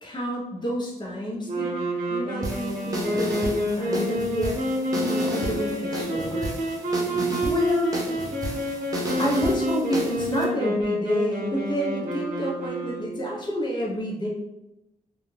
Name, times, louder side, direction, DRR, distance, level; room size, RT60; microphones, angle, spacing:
voice 1, 0.0-1.7 2.1-4.6 4.9-6.5 7.4-8.0 9.2-14.3, equal, 35° left, -3 dB, 0.9 m, -29 dB
sound 1, 1.4-13.3, equal, 75° right, 0.7 m, -28 dB
sound 2, 2.4-10.4, right 1 dB, 25° right, 0.6 m, -32 dB
2.4 x 2.3 x 3.2 m, 0.92 s
cardioid pair, 80°, 14 cm